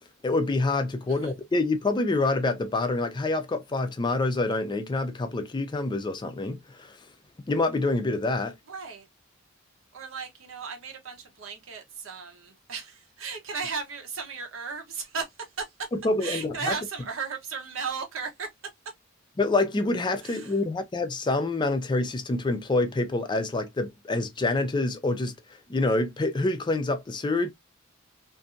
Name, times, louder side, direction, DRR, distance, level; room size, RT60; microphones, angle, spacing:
voice 1, 0.2-7.0 7.5-8.5 16.0-16.7 19.4-25.3 25.7-27.5, left 2 dB, 20° left, 0.4 m, -26 dB
voice 2, 8.7-9.1 9.9-15.3 15.6-15.7 16.2-18.5 20.2-20.6, right 5 dB, 75° right, 0.9 m, -35 dB
2.6 x 2.5 x 2.4 m
head